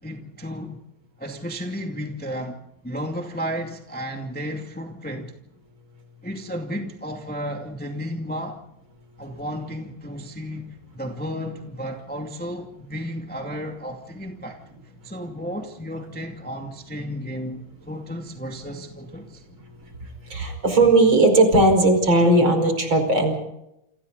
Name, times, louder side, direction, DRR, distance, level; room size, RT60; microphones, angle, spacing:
voice 1, 0.0-0.8 1.2-5.3 6.2-8.6 9.2-14.6 15.0-19.4, equal, 5° left, 2 dB, 1.0 m, -33 dB
voice 2, 20.3-23.3, right 2 dB, 30° right, 5 dB, 5.4 m, -17 dB
29.0 x 27.5 x 4.0 m, 0.85 s
omnidirectional pair, 4.4 m